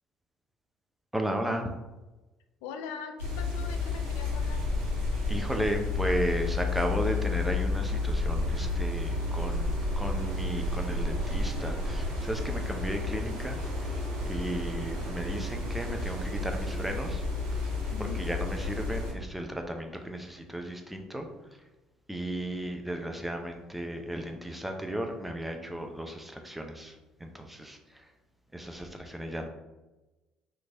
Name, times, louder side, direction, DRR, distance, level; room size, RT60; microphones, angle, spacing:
voice 1, 1.1-1.7 5.3-13.6 14.3-17.2 18.0-21.3 22.1-26.9 27.2-27.8 28.5-29.5, right 1 dB, 5° right, 4 dB, 0.6 m, -34 dB
voice 2, 2.6-4.6 17.9-18.3, left 6 dB, 80° left, 6 dB, 0.3 m, -41 dB
sound 1, 3.2-19.1, left 2 dB, 80° right, 1.2 m, -31 dB
3.1 x 2.6 x 3.4 m, 1.1 s
hypercardioid pair, 60°, 2 cm